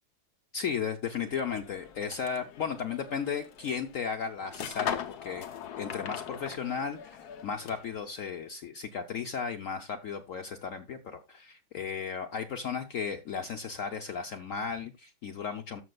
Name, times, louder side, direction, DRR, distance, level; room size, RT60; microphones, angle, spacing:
voice 1, 0.5-5.5 5.8-15.8, left 6 dB, 75° left, 5 dB, 0.7 m, -35 dB
sound 1, 1.2-8.0, left 8 dB, 60° left, 1.2 m, -40 dB
13.0 x 6.7 x 2.3 m, 0.24 s
omnidirectional pair, 2.2 m